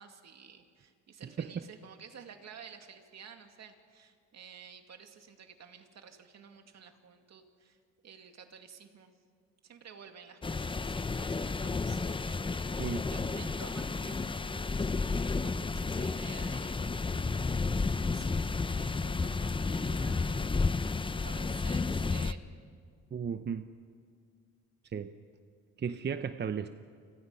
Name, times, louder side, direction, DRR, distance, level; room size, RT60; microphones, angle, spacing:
voice 1, 0.0-9.1 9.6-17.6 18.0-20.7 21.1-22.4, right 7 dB, 60° right, 5 dB, 2.4 m, -52 dB
sound 1, 10.4-22.3, left 4 dB, 15° left, 0.7 m, -32 dB
voice 2, 12.8-13.1 23.1-23.7 24.9-25.1 25.8-26.7, right 7 dB, 35° right, 10 dB, 0.8 m, -35 dB
30.0 x 26.0 x 5.7 m, 2.2 s
cardioid pair, 90°, 30 cm